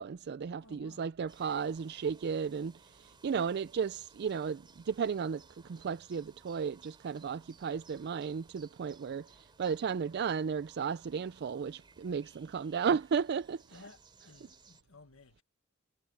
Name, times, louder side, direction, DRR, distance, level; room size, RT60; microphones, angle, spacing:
voice 1, 0.0-13.8, right 6 dB, 50° right, 0.4 m, -34 dB
voice 2, 0.6-1.1 13.7-15.4, left 3 dB, 70° left, 1.7 m, -56 dB
sound 1, 1.3-14.8, right 4 dB, 25° right, 3.2 m, -61 dB
head